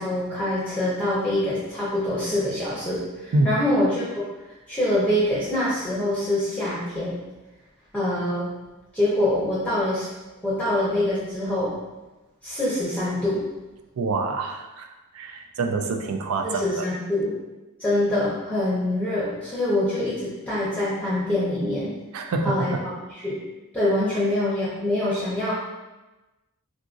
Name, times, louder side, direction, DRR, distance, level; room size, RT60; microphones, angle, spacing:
voice 1, 0.0-4.3 4.7-7.2 7.9-8.5 8.9-10.1 10.4-11.7 12.4-13.4 16.4-17.3 17.8-21.9 22.4-22.7 23.2-23.4 23.7-25.5, left 1 dB, 5° left, -10 dB, 0.7 m, -25 dB
voice 2, 14.0-14.9 15.1-16.9 22.1-22.7, right 3 dB, 70° right, 4 dB, 0.4 m, -26 dB
3.8 x 2.5 x 2.4 m, 1.1 s
head